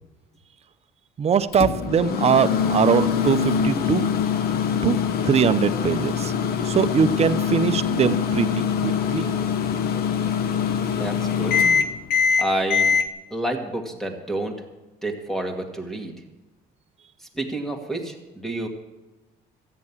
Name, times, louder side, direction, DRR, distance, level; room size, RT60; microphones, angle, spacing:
voice 1, 1.2-4.0 4.8-5.0 5.2-6.3 6.6-8.5 8.8-9.2, right 7 dB, 40° right, 11 dB, 0.7 m, -21 dB
Microwave oven, 1.5-13.1, left 7 dB, 65° left, 1.0 m, -23 dB
voice 2, 10.9-11.6 12.4-12.9 13.3-14.6 15.0-16.1 17.3-18.7, right 1 dB, ahead, 3 dB, 2.1 m, -29 dB
13.5 x 9.7 x 7.2 m, 1.1 s
cardioid pair, 110°, 17 cm